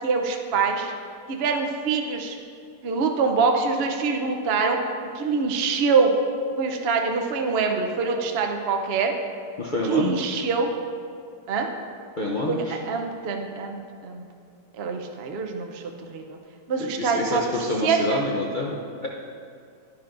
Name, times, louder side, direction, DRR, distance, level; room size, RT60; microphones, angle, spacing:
voice 1, 0.0-0.9 1.3-2.4 2.8-4.8 5.1-6.1 6.6-9.1 9.8-10.7 11.5-11.7 12.5-14.2 14.8-15.8 16.1-16.4 16.7-17.5 17.8-18.2, right 5 dB, 65° right, 3 dB, 0.6 m, -24 dB
voice 2, 9.6-10.1 12.2-12.8 16.8-19.1, left 2 dB, 75° left, -2 dB, 0.4 m, -27 dB
10.5 x 10.5 x 2.5 m, 2.4 s
omnidirectional pair, 2.0 m